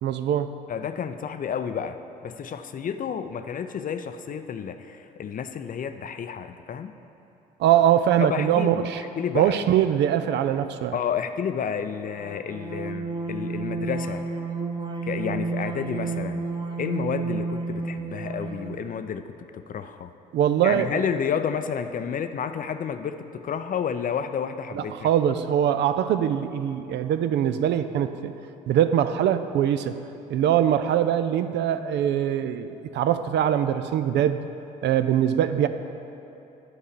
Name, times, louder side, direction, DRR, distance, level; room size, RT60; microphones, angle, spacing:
voice 1, 0.0-0.5 7.6-9.0 9.3-11.0 20.3-21.0 24.7-28.3 28.7-30.0 30.3-34.4 34.8-35.7, right 10 dB, 55° right, 10 dB, 0.5 m, -22 dB
voice 2, 0.7-2.0 2.2-6.9 8.2-9.5 10.9-14.2 15.0-16.5 16.8-19.2 19.5-20.1 20.6-25.1, left 7 dB, 40° left, 9 dB, 0.5 m, -30 dB
sound 1, 12.1-18.9, right 4 dB, 20° right, 1.1 m, -31 dB
10.0 x 4.6 x 6.7 m, 3.0 s
hypercardioid pair, 50°, 21 cm